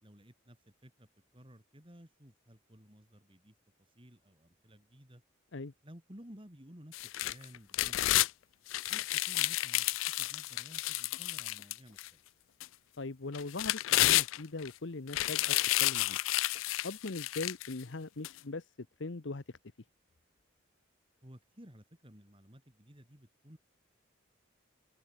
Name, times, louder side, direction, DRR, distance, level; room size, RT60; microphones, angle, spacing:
voice 1, 0.0-3.5 4.0-5.2 5.8-8.3 8.9-12.2 21.2-23.6, equal, 25° right, 3.7 m, -55 dB
sound 1, 6.9-8.3 8.7-12.1 12.6-12.7 13.3-14.7 15.1-17.7 18.2-18.3, left 17 dB, 80° left, 0.3 m, -31 dB
voice 2, 13.0-15.5 15.8-16.2 16.8-18.6 19.0-19.4, left 3 dB, 65° left, 0.9 m, -40 dB
open air
head